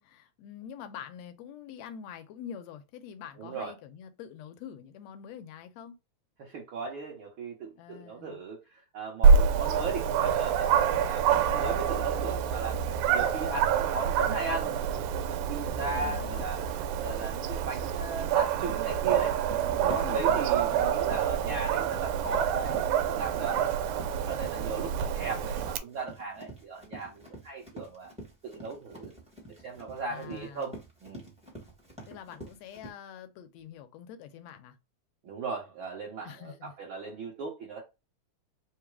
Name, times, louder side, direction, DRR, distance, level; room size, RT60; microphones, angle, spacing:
voice 1, 0.0-6.0 7.8-8.4 15.9-16.5 19.9-20.3 24.5-25.0 30.1-30.7 32.0-34.8 36.2-36.7, left 8 dB, 75° left, 1.8 m, -45 dB
voice 2, 3.4-3.7 6.4-8.6 8.9-12.8 13.1-16.6 17.0-23.6 24.0-28.1 28.4-29.1 29.6-31.3 35.2-37.8, right 4 dB, 60° right, 1.4 m, -37 dB
Dog, 9.2-25.8, right 7 dB, 85° right, 1.9 m, -27 dB
Run, 18.6-32.9, equal, 5° right, 0.6 m, -47 dB
4.7 x 2.1 x 4.6 m
omnidirectional pair, 3.3 m